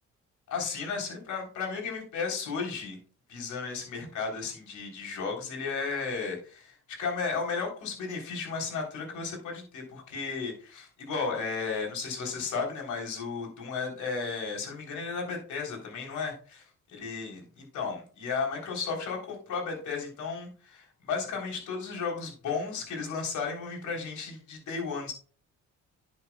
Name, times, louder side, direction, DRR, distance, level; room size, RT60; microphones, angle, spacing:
voice 1, 0.5-3.0 3.3-16.6 16.9-25.1, left 5 dB, 75° left, 1 dB, 3.6 m, -34 dB
10.5 x 8.6 x 2.3 m, 0.38 s
cardioid pair, 90°, 30 cm